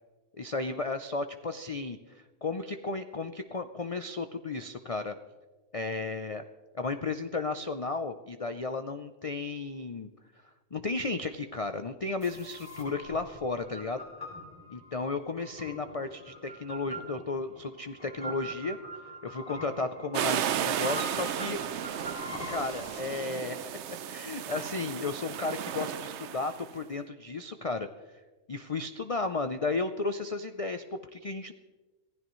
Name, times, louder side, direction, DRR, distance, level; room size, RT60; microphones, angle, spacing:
voice 1, 0.4-5.2 5.7-6.4 6.7-10.1 10.7-14.0 14.7-18.8 19.2-21.6 22.5-27.9 28.5-31.5, left 3 dB, 65° left, 8 dB, 0.3 m, -34 dB
sound 1, 12.2-23.0, left 1 dB, 40° left, 3.7 m, -43 dB
sound 2, 20.1-26.7, right 10 dB, 65° right, 0.8 m, -34 dB
26.0 x 15.5 x 3.1 m, 1.3 s
omnidirectional pair, 1.4 m